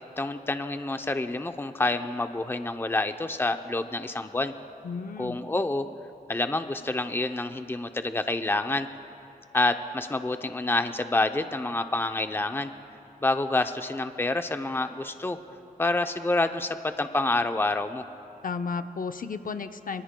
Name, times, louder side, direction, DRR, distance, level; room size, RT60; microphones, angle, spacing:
voice 1, 0.2-4.5 5.2-5.8 6.3-8.9 9.5-12.7 13.2-15.4 15.8-18.0, left 2 dB, 15° left, 7 dB, 0.6 m, -28 dB
voice 2, 4.8-5.4 18.4-20.0, left 5 dB, 60° left, 8 dB, 0.6 m, -33 dB
26.0 x 23.5 x 2.3 m, 2.8 s
wide cardioid pair, 90°, 16 cm